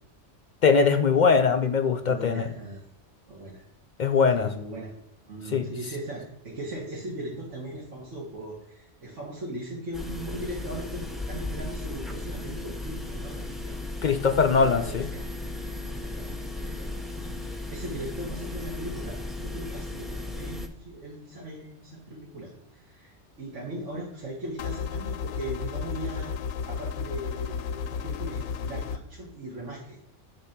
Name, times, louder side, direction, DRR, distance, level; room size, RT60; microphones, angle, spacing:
voice 1, 0.6-2.5 4.0-4.5 5.5-5.7 14.0-15.1, left 5 dB, 55° left, 6 dB, 0.5 m, -21 dB
voice 2, 2.0-2.9 3.3-3.6 4.3-4.9 5.3-13.8 14.6-15.2 15.6-16.3 16.6-26.3 26.7-30.0, right 1 dB, 75° right, -5 dB, 2.0 m, -39 dB
sound 1, 9.9-20.7, left 2 dB, ahead, 0.5 m, -36 dB
sound 2, 24.6-29.0, left 6 dB, 75° left, 0.9 m, -33 dB
9.5 x 3.4 x 5.9 m, 0.78 s
omnidirectional pair, 1.3 m